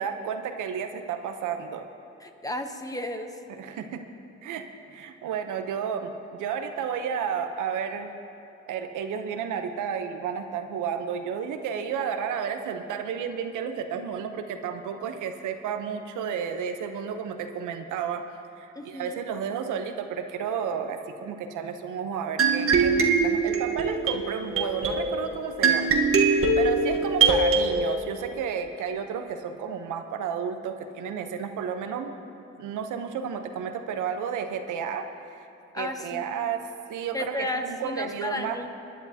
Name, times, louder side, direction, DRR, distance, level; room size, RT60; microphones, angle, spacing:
voice 1, 0.0-1.9 3.5-4.0 4.4-4.7 4.9-8.1 8.7-18.3 18.6-26.0 26.6-32.1 32.6-35.5 35.8-36.6 36.9-38.6, right 7 dB, 80° right, 6 dB, 0.9 m, -32 dB
voice 2, 2.2-3.3 18.8-19.2 35.7-36.2 37.1-38.7, left 1 dB, 10° left, 5 dB, 1.0 m, -33 dB
sound 1, 22.4-27.6, right 4 dB, 45° right, 1.4 m, -22 dB
23.0 x 11.0 x 2.8 m, 2.9 s
cardioid pair, 90°, 30 cm